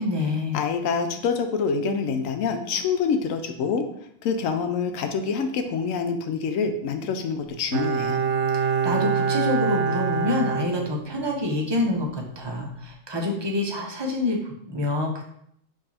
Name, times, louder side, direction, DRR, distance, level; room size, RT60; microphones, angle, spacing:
voice 1, 0.0-0.6 8.5-15.3, left 2 dB, 25° right, 0 dB, 0.6 m, -27 dB
voice 2, 0.5-3.9 4.2-8.2, left 5 dB, 80° left, 6 dB, 1.0 m, -26 dB
Bowed string instrument, 7.7-11.5 11.8-11.9, right 6 dB, 80° right, 1.0 m, -25 dB
4.8 x 2.7 x 4.1 m, 0.70 s
omnidirectional pair, 1.4 m